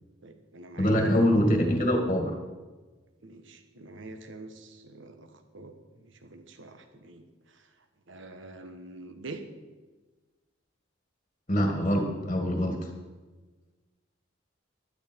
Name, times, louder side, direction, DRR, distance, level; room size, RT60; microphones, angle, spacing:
voice 1, 0.2-1.2 3.2-7.7 8.1-9.4, right 2 dB, 65° right, 7 dB, 1.2 m, -45 dB
voice 2, 0.8-2.3 11.5-12.9, equal, 30° left, 3 dB, 1.8 m, -24 dB
16.0 x 12.0 x 4.5 m, 1.3 s
head